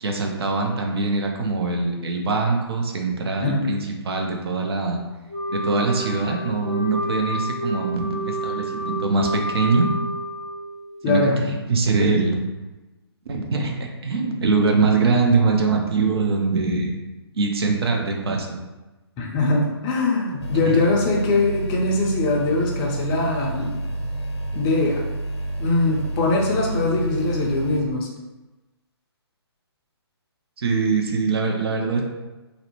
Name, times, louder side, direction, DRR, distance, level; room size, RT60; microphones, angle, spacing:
voice 1, 0.0-5.0 5.5-9.9 11.1-12.4 13.3-17.0 17.3-18.6 20.7-20.8 30.6-32.0, right 4 dB, 65° right, 2 dB, 0.5 m, -23 dB
Wind instrument woodwind instrument, 5.3-10.9, right 1 dB, 85° right, 1.3 m, -29 dB
voice 2, 11.0-11.5 19.2-23.8 24.5-25.0 25.6-28.1, left 2 dB, 20° left, -2 dB, 0.4 m, -22 dB
sound 1, 20.4-27.8, right 1 dB, 75° left, 0.6 m, -29 dB
2.6 x 2.0 x 2.8 m, 1.1 s
hypercardioid pair, 145°, 14 cm